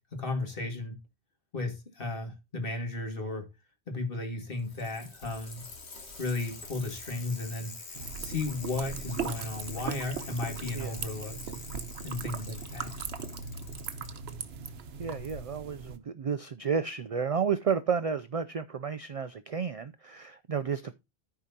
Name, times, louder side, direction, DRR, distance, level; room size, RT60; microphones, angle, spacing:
voice 1, 0.1-1.0 1.5-3.5 3.9-5.6 6.2-7.7 8.2-11.4 12.0-12.9, left 2 dB, 55° left, 2.3 m, -34 dB
Bicycle, 4.5-14.1 15.2-15.3, left 3 dB, 90° left, 2.1 m, -45 dB
sound 1, 7.9-16.0, right 6 dB, 75° right, 1.1 m, -39 dB
voice 2, 15.0-21.0, right 6 dB, 55° right, 0.4 m, -31 dB
13.5 x 4.8 x 2.8 m
omnidirectional pair, 1.1 m